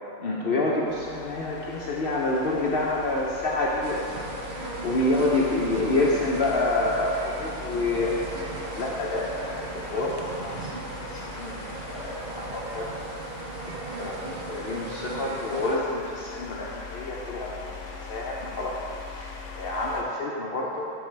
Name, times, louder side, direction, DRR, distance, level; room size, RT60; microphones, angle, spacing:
voice 1, 0.2-4.1 4.6-8.2 8.8-10.7 11.1-11.5 11.8-12.9 13.7-17.7 18.1-18.8 19.1-20.9, left 2 dB, 55° left, -3 dB, 0.7 m, -28 dB
sound 1, 0.9-20.0, left 4 dB, 75° left, 1.1 m, -41 dB
sound 2, 3.8-15.8, right 3 dB, 60° right, 0.6 m, -37 dB
10.5 x 3.9 x 3.2 m, 2.5 s
omnidirectional pair, 1.3 m